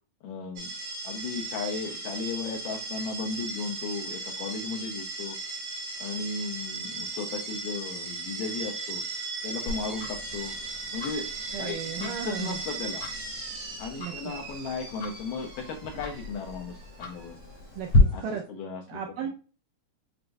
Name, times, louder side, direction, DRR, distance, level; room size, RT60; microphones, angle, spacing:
voice 1, 0.2-0.7 1.0-5.4 6.0-9.0 9.4-10.6 10.9-11.3 11.6-13.1 13.8-17.4 18.1-19.3, left 5 dB, 85° left, 1 dB, 2.0 m, -35 dB
sound 1, 0.6-18.4, right 3 dB, 60° right, 1.5 m, -37 dB
Tick-tock, 9.7-18.0, left 1 dB, 60° left, 1.5 m, -35 dB
voice 2, 11.5-12.6 14.0-14.1 17.8-18.4 18.9-19.3, right 8 dB, 80° right, 2 dB, 2.0 m, -35 dB
7.7 x 2.6 x 2.2 m, 0.35 s
omnidirectional pair, 4.3 m